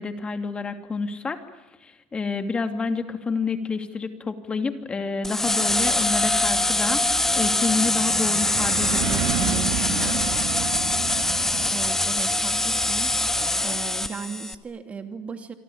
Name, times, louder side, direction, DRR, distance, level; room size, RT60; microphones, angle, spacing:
voice 1, 0.0-1.4 1.8-10.2, left 4 dB, 25° left, 7 dB, 2.7 m, -29 dB
sound 1, 5.2-14.5, left 2 dB, 10° left, 1.7 m, -24 dB
sound 2, 5.4-11.8, right 12 dB, 70° right, 1.6 m, -31 dB
voice 2, 11.7-13.1 13.6-15.5, right 5 dB, 30° right, 7 dB, 2.7 m, -36 dB
26.5 x 24.0 x 8.7 m, 1.0 s
supercardioid pair, 100°, 4 cm